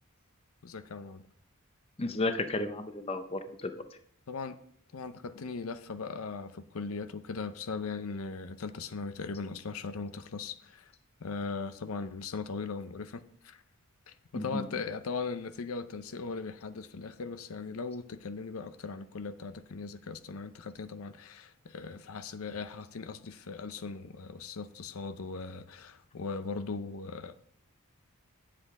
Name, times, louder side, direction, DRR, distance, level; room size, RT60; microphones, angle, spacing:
voice 1, 0.6-1.2 4.3-4.6 4.9-10.9 11.2-13.6 14.1-27.3, left 4 dB, 75° left, 0.6 m, -39 dB
voice 2, 2.0-3.8 14.3-14.7, left 2 dB, 25° left, 0.6 m, -33 dB
9.8 x 7.6 x 3.6 m
head